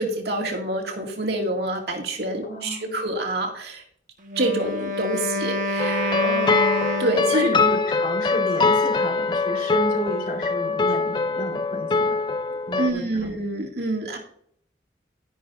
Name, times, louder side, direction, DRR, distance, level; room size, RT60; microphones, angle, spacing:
voice 1, 0.0-3.8 4.4-6.2 7.0-7.5 12.8-14.2, right 1 dB, 65° right, 1 dB, 2.3 m, -26 dB
voice 2, 2.4-3.0 6.2-6.8 7.3-12.2 12.7-13.3, right 1 dB, 55° left, 0 dB, 3.9 m, -32 dB
Wind instrument woodwind instrument, 4.2-7.7, equal, 45° right, 1.1 m, -27 dB
sound 1, 5.8-12.9, left 4 dB, 25° left, 0.3 m, -23 dB
12.0 x 10.5 x 2.6 m, 0.62 s
head